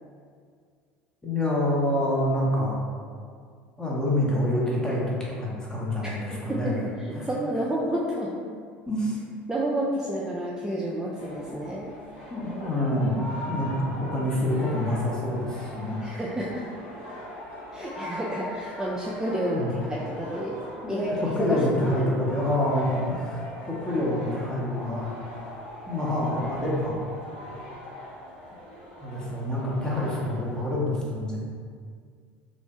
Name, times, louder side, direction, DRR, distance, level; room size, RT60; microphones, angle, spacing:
voice 1, 1.2-2.8 3.8-6.8 7.1-7.3 8.9-9.2 12.3-16.1 19.5-19.7 20.8-25.1 25.9-27.1 29.0-31.4, left 1 dB, 10° left, -5 dB, 0.8 m, -27 dB
voice 2, 6.0-8.3 9.5-11.9 16.0-16.7 17.7-20.6 20.9-21.1 21.4-21.6 22.0-22.1, right 1 dB, 10° right, -5 dB, 0.4 m, -30 dB
sound 1, 11.2-30.6, left 1 dB, 80° left, 0.6 m, -41 dB
3.1 x 2.1 x 2.8 m, 2.1 s
hypercardioid pair, 70°, 6 cm